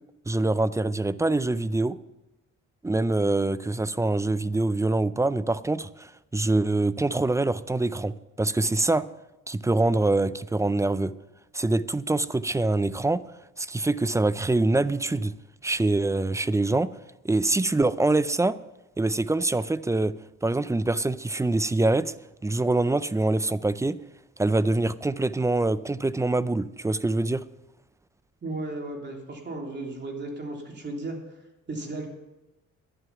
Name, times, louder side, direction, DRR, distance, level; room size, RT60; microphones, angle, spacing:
voice 1, 0.3-2.0 2.8-9.1 9.5-11.1 11.5-13.2 13.6-15.3 15.6-16.9 17.2-18.6 19.0-20.1 20.4-22.1 22.4-24.0 24.4-27.4, right 2 dB, 10° right, 16 dB, 0.4 m, -24 dB
voice 2, 28.4-31.1 31.7-32.1, right 2 dB, 35° right, 1 dB, 3.3 m, -35 dB
11.5 x 10.5 x 5.9 m, 1.0 s
cardioid pair, 90°, 30 cm